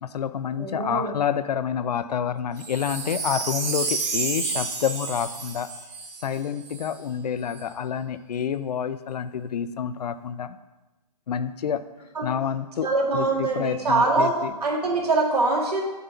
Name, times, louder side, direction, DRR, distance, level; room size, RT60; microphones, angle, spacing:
voice 1, 0.0-5.7 6.2-10.6 11.3-11.8 12.2-14.5, left 8 dB, 75° left, 13 dB, 0.5 m, -28 dB
voice 2, 0.6-1.2 12.1-12.3 12.8-14.3 14.6-15.8, right 3 dB, 70° right, -2 dB, 1.9 m, -23 dB
Wind chime, 2.6-6.9 7.5-7.6, right 4 dB, 15° right, 0.6 m, -30 dB
7.8 x 2.7 x 5.8 m, 1.1 s
hypercardioid pair, 145°, 21 cm